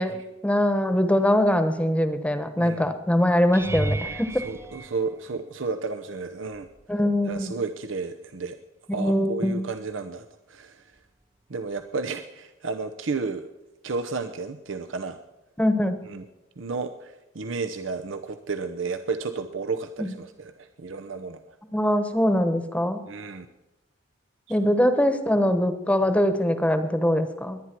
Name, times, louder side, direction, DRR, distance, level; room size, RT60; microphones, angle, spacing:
voice 1, 0.0-4.4 6.9-7.5 9.0-9.6 15.6-16.0 20.0-20.1 21.7-23.0 24.5-27.6, equal, 5° left, 9 dB, 1.1 m, -22 dB
voice 2, 2.6-2.9 4.4-8.6 8.9-10.8 11.5-13.5 13.8-15.2 16.1-16.3 16.6-21.5 23.1-23.5 24.5-24.6, right 4 dB, 85° right, 8 dB, 0.8 m, -32 dB
sound 1, 3.5-5.8 6.5-6.9 7.3-7.5 11.8-11.9, right 2 dB, 15° right, 0.5 m, -33 dB
21.5 x 9.7 x 4.5 m, 1.0 s
head